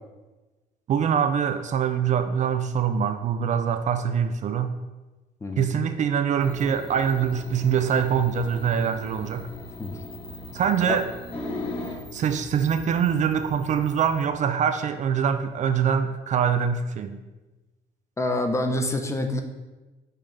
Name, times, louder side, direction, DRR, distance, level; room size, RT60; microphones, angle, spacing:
voice 1, 0.9-4.7 5.6-9.5 10.5-11.1 12.1-17.2, right 7 dB, 45° right, 9 dB, 0.4 m, -24 dB
sound 1, 6.4-14.2, left 2 dB, 35° left, 1.5 m, -39 dB
voice 2, 18.2-19.4, left 1 dB, 15° left, 6 dB, 0.6 m, -26 dB
5.5 x 3.5 x 5.2 m, 1.2 s
cardioid pair, 110°, 17 cm